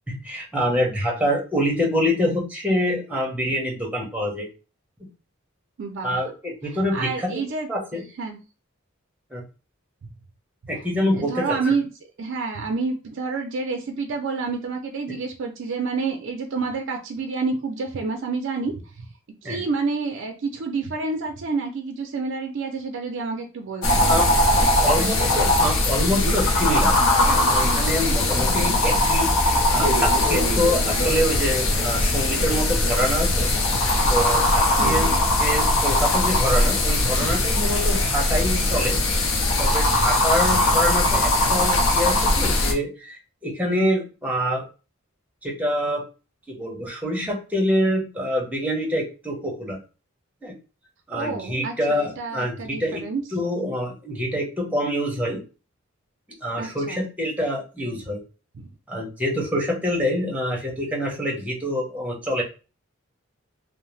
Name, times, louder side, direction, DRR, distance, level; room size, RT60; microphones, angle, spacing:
voice 1, 0.1-4.5 6.0-7.1 7.7-8.0 9.3-9.4 10.7-11.7 19.4-19.6 24.1-24.3 24.8-26.9 27.3-33.5 34.1-35.1 35.4-39.0 39.6-44.7 45.4-46.0 46.5-49.8 50.4-50.5 51.1-53.0 53.3-55.4 56.4-58.2 58.9-62.4, equal, 5° right, -1 dB, 0.8 m, -26 dB
voice 2, 5.8-6.2 6.9-7.7 8.2-8.4 11.2-11.9 12.2-19.0 19.4-24.1 24.8-25.6 28.6-29.0 34.8-35.2 40.7-40.9 51.1-53.2 56.6-57.1 58.5-58.6, right 4 dB, 65° right, 3 dB, 0.4 m, -29 dB
sound 1, 23.8-42.7, left 1 dB, 70° left, 0.6 m, -20 dB
2.7 x 2.0 x 3.0 m, 0.33 s
head